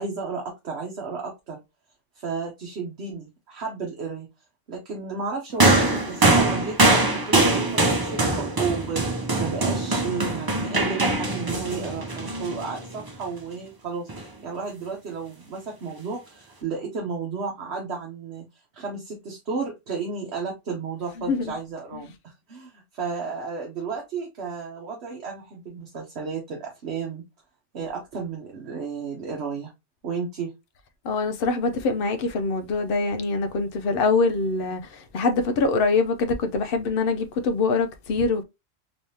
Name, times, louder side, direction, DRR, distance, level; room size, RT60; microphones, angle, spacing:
voice 1, 0.0-1.6 2.1-4.3 4.7-14.1 14.4-18.4 18.7-27.2 27.7-29.7 30.0-30.5, right 5 dB, 65° right, 1.1 m, -33 dB
sound 1, 5.6-13.1 14.1-14.2, right 2 dB, 30° right, 0.5 m, -22 dB
voice 2, 31.0-34.8 35.1-38.4, left 3 dB, 60° left, 0.7 m, -24 dB
3.4 x 3.1 x 2.7 m
omnidirectional pair, 1.2 m